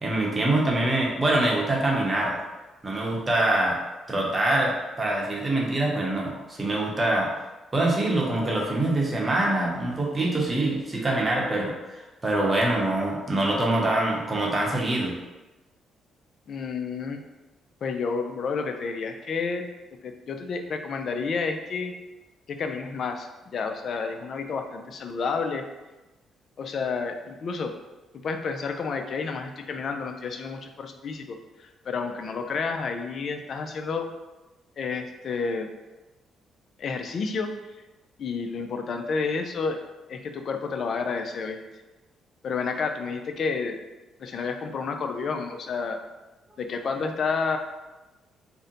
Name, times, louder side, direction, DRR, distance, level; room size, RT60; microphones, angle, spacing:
voice 1, 0.0-2.4 2.8-3.8 4.1-7.3 7.7-11.7 12.2-15.1, right 1 dB, 25° right, -2 dB, 0.8 m, -24 dB
voice 2, 16.5-17.2 17.8-19.6 20.0-21.9 22.5-25.7 26.6-27.7 28.2-34.1 34.8-35.7 36.8-37.5 38.2-39.8 40.1-41.6 42.4-43.8 44.2-46.0 46.6-47.6, left 5 dB, 55° left, 5 dB, 0.3 m, -30 dB
2.7 x 2.1 x 3.8 m, 1.1 s
cardioid pair, 90°, 0 cm